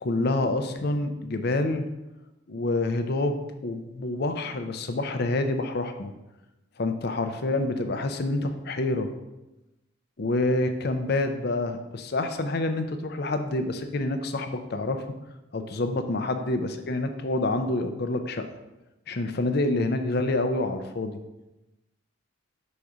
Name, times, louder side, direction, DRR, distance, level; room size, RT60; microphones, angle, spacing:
voice 1, 0.0-1.9 2.5-6.1 6.8-9.1 10.2-15.1 15.5-18.5 19.1-21.2, left 2 dB, 55° left, 8 dB, 0.5 m, -27 dB
5.0 x 4.1 x 5.9 m, 1.0 s
head